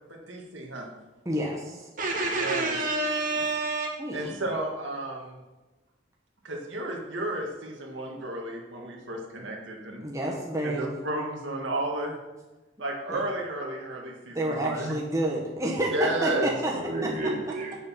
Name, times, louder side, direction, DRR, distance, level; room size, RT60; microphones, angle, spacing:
voice 1, 0.1-0.9 2.4-2.8 4.1-5.4 6.4-10.1 10.6-12.2 12.8-15.0 15.9-16.5, right 1 dB, 70° right, 0 dB, 1.7 m, -32 dB
voice 2, 1.2-1.9 4.0-4.4 10.0-10.9 13.1-13.2 14.3-16.7 17.0-17.3, right 1 dB, 15° right, -3 dB, 1.1 m, -29 dB
voice 3, 2.0-3.9 16.7-17.8, right 2 dB, 45° right, 0 dB, 2.0 m, -29 dB
7.9 x 6.7 x 5.7 m, 1.2 s
head